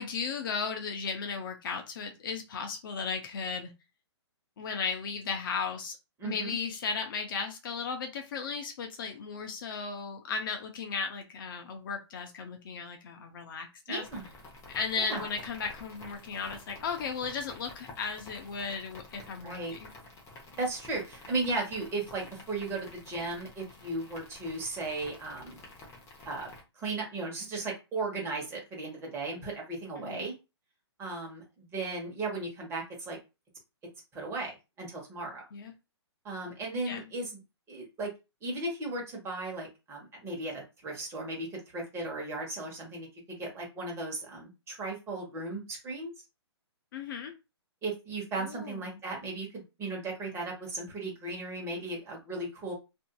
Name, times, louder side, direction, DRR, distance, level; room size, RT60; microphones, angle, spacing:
voice 1, 0.0-3.7 4.6-6.0 6.2-14.0 14.7-19.9 30.0-30.2 35.5-35.7 36.8-37.1 46.9-47.3 48.4-48.8, left 5 dB, 50° left, 5 dB, 0.6 m, -35 dB
voice 2, 6.2-6.5 13.9-14.3 15.0-15.3 19.4-19.7 20.6-25.6 26.2-26.5 26.7-30.3 31.0-33.2 34.1-35.4 36.2-37.4 37.7-38.1 38.4-46.1 47.8-52.7, right 2 dB, 15° right, 0 dB, 1.1 m, -36 dB
sound 1, 14.0-26.6, left 2 dB, 20° left, 0.8 m, -50 dB
2.6 x 2.5 x 2.3 m, 0.26 s
hypercardioid pair, 135°, 15 cm